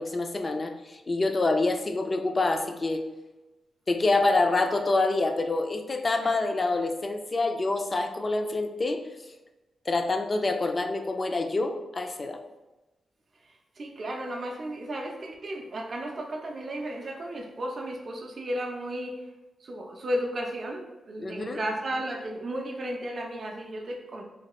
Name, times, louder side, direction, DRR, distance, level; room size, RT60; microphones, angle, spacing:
voice 1, 0.0-3.0 3.9-9.0 9.9-12.4 21.2-21.6, left 2 dB, 35° left, 6 dB, 0.4 m, -26 dB
voice 2, 13.4-19.3 19.6-24.2, right 1 dB, 50° right, 1 dB, 0.4 m, -34 dB
3.1 x 2.3 x 2.9 m, 1.1 s
cardioid pair, 75°, 0 cm